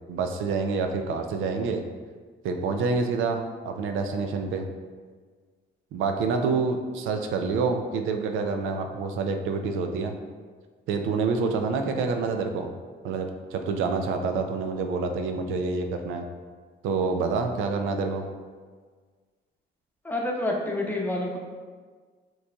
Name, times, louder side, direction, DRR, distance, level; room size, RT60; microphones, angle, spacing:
voice 1, 0.1-1.8 2.4-4.6 5.9-10.1 10.9-12.7 13.0-16.2 16.8-18.3, right 4 dB, 85° right, 5 dB, 0.4 m, -27 dB
voice 2, 20.0-21.4, left 1 dB, 10° left, -2 dB, 0.8 m, -28 dB
6.3 x 3.1 x 2.3 m, 1.5 s
cardioid pair, 90°, 20 cm